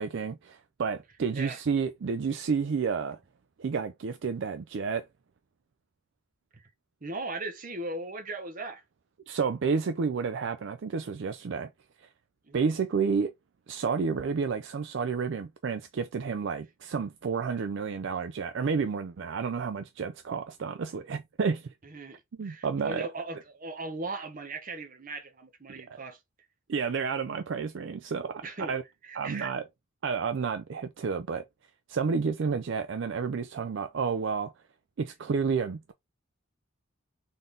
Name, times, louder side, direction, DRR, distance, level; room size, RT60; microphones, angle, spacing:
voice 1, 0.0-3.2 3.6-5.1 9.3-11.7 12.0-12.1 12.5-13.3 13.7-21.7 22.4-23.1 26.7-28.8 29.2-29.6 30.0-31.4 31.9-34.5 35.0-35.9, right 5 dB, 60° right, 0.4 m, -30 dB
voice 2, 7.0-8.8 12.5-12.7 21.8-26.2 28.4-28.7 29.0-29.5, right 2 dB, 40° right, 0.9 m, -38 dB
3.9 x 3.6 x 3.8 m
head